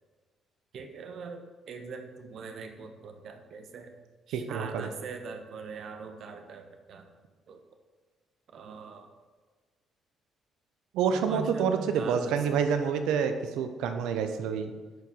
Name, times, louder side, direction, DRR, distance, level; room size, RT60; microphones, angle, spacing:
voice 1, 0.7-3.9 4.3-7.1 7.5-7.6 8.5-9.1 11.1-12.6, right 5 dB, 65° right, 5 dB, 1.2 m, -42 dB
voice 2, 4.3-4.9 10.9-14.7, right 6 dB, 80° right, 7 dB, 0.8 m, -28 dB
10.5 x 5.0 x 5.3 m, 1.4 s
supercardioid pair, 60°, 0 cm